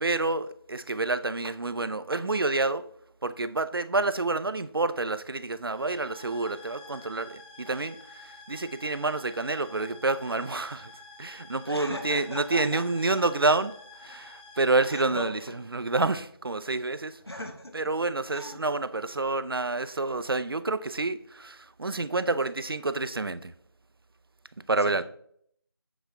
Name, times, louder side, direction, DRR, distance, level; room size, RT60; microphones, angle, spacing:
voice 1, 0.0-2.9 3.2-10.9 11.2-13.7 14.0-15.4 15.7-17.2 17.7-23.5 24.7-25.0, right 3 dB, 65° right, 0.5 m, -28 dB
sound 1, 5.6-16.2, left 3 dB, 20° left, 1.3 m, -50 dB
voice 2, 6.0-7.1 11.6-12.8 13.1-13.2 14.8-15.3 17.3-17.8 18.3-18.6 24.8-25.0, left 1 dB, 80° left, 1.7 m, -40 dB
sound 2, 15.9-16.4 17.2-17.6 18.2-18.4 19.2-19.3 21.3-21.4 22.4-22.5, equal, ahead, 1.2 m, -52 dB
8.2 x 5.0 x 3.4 m
figure-of-eight pair, 170°, 13 cm